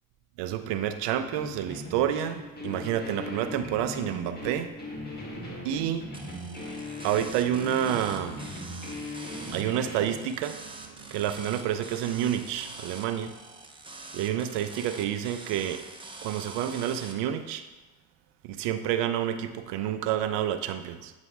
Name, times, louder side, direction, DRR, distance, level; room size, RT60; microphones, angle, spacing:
voice 1, 0.4-4.7 5.6-6.1 7.0-8.4 8.7-13.3 14.1-15.8 16.2-17.6 18.4-21.1, right 10 dB, 70° right, 9 dB, 0.6 m, -29 dB
sound 1, 1.3-10.2, left 1 dB, 20° left, 1.7 m, -39 dB
sound 2, 6.1-17.1, right 3 dB, 10° right, 0.7 m, -45 dB
8.0 x 2.8 x 4.6 m, 1.2 s
hypercardioid pair, 60°, 43 cm